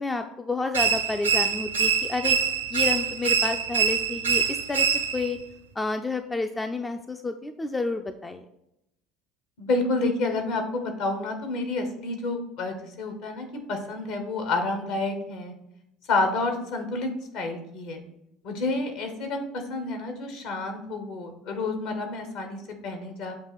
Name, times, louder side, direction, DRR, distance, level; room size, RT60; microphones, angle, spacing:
voice 1, 0.0-2.4 2.7-4.9 5.1-5.4 5.8-8.4, left 3 dB, 15° left, 7 dB, 0.4 m, -30 dB
sound 1, 0.7-5.4, right 6 dB, 85° right, 0.6 m, -24 dB
voice 2, 9.6-15.5 16.1-17.1 17.3-18.0 18.4-23.3, left 2 dB, 60° left, 4 dB, 1.2 m, -29 dB
7.3 x 2.9 x 5.8 m, 0.83 s
figure-of-eight pair, 65°, 0 cm